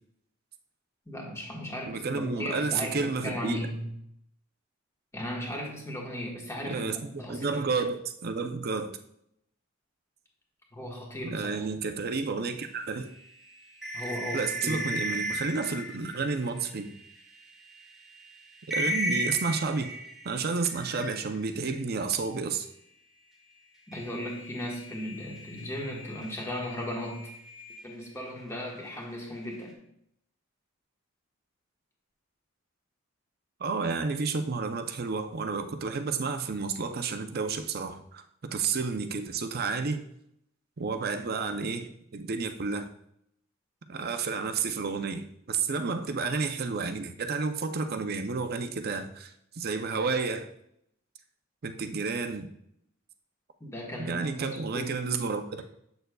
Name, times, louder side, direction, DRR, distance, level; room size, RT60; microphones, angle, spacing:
voice 1, 1.1-3.9 5.1-7.6 10.7-11.5 13.9-14.9 23.9-27.3 27.8-29.8 53.6-55.0, equal, 15° left, -2 dB, 1.4 m, -36 dB
voice 2, 1.9-3.6 6.6-9.0 11.2-13.1 14.0-17.0 18.7-20.0 20.2-22.7 33.6-38.2 38.5-40.0 40.8-42.9 43.9-50.5 51.6-52.5 54.0-55.6, right 4 dB, 50° right, 7 dB, 0.6 m, -31 dB
sound 1, 12.8-17.2 17.7-17.8 18.1-18.3 18.6-21.6 23.9-28.3, equal, ahead, 1.2 m, -36 dB
7.8 x 6.7 x 2.3 m, 0.73 s
head